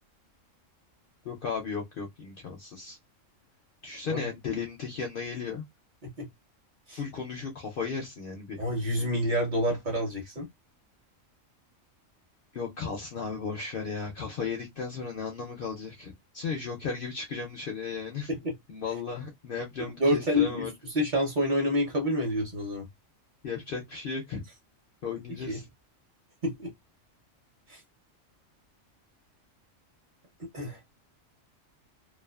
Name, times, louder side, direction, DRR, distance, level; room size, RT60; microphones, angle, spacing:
voice 1, 1.2-3.0 3.8-5.6 6.9-8.6 12.5-18.3 18.7-20.7 23.4-24.4 25.0-25.7, left 5 dB, 60° left, 0.6 m, -35 dB
voice 2, 8.6-10.5 18.3-18.5 19.8-20.7 20.9-22.9 25.5-25.6 26.4-26.7 27.7-27.8 30.5-30.8, equal, 45° right, 0.8 m, -28 dB
2.4 x 2.4 x 2.3 m
omnidirectional pair, 1.4 m